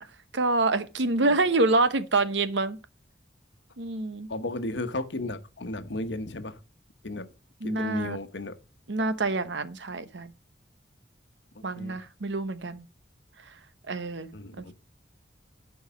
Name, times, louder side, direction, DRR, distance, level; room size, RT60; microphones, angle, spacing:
voice 1, 0.3-2.8 3.8-4.3 7.6-8.2 8.9-10.3 11.6-12.9 13.9-14.3 14.6-14.7, right 2 dB, 80° right, 0.9 m, -26 dB
voice 2, 4.3-6.6 7.0-7.3 7.6-8.6 11.5-12.0 14.3-14.7, left 2 dB, 75° left, 1.0 m, -34 dB
11.5 x 4.7 x 5.0 m
head